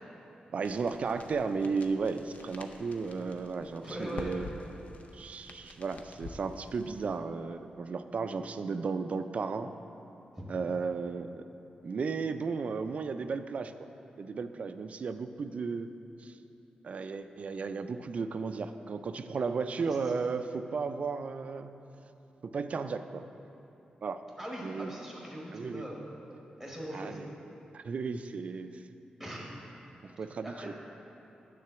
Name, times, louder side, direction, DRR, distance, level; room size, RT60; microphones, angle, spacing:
voice 1, 0.5-4.5 5.1-9.7 10.5-11.5 11.8-13.9 14.2-15.9 16.2-16.4 16.8-21.7 22.4-23.3 24.0-24.2 24.6-25.0 25.5-25.8 26.9-27.3 27.7-28.8 30.2-30.7, right 4 dB, 50° right, 10 dB, 0.3 m, -34 dB
sound 1, 0.6-7.2, left 3 dB, 65° left, 0.6 m, -48 dB
voice 2, 3.8-4.3 10.4-10.5 19.8-20.0 24.4-26.0 26.6-27.2 29.2-29.4 30.0-30.1 30.4-30.8, right 1 dB, 5° left, -4 dB, 1.2 m, -40 dB
9.6 x 3.8 x 6.8 m, 3.0 s
wide cardioid pair, 110°, 3 cm